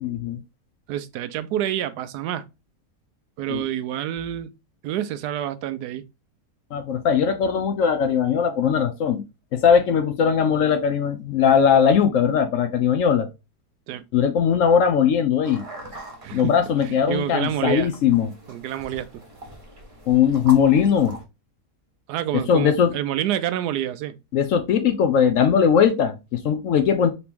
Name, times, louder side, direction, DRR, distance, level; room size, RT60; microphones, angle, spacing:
voice 1, 0.0-0.4 3.5-3.6 6.7-9.2 9.5-13.3 14.1-15.6 16.3-18.3 20.1-21.2 22.3-22.9 24.3-27.1, left 7 dB, 65° left, 0.8 m, -19 dB
voice 2, 0.9-2.5 3.4-4.5 4.8-6.0 13.9-14.0 16.2-16.6 16.8-17.9 18.5-19.2 22.1-24.2, right 11 dB, 85° right, 1.1 m, -28 dB
sound 1, 15.4-21.2, right 1 dB, 25° right, 0.9 m, -41 dB
4.2 x 2.9 x 3.4 m
omnidirectional pair, 1.7 m